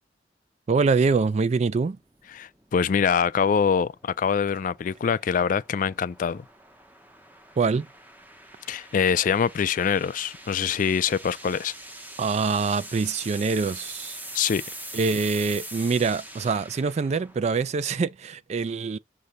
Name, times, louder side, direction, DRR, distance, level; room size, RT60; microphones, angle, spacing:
voice 1, 0.7-2.0 7.6-7.9 12.2-14.2 14.9-19.0, right 4 dB, 40° right, 0.3 m, -24 dB
sound 1, 1.9-18.0, right 1 dB, 10° right, 0.7 m, -44 dB
voice 2, 2.3-6.4 8.7-11.7 14.3-14.6, left 7 dB, 45° left, 0.3 m, -24 dB
6.5 x 2.7 x 5.5 m
head